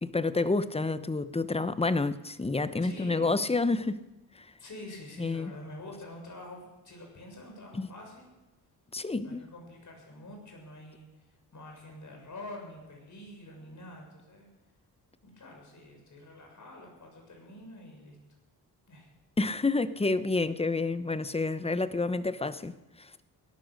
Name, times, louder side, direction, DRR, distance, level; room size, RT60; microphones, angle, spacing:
voice 1, 0.0-4.0 4.3-4.5 5.2-5.5 7.7-7.9 8.9-9.4 19.4-23.1, left 3 dB, 15° left, 0.8 m, -29 dB
voice 2, 2.8-3.4 4.6-8.3 9.2-14.5 15.2-18.2 18.9-19.1, left 1 dB, 50° left, 6.8 m, -47 dB
17.0 x 11.5 x 6.5 m
cardioid pair, 70°, 38 cm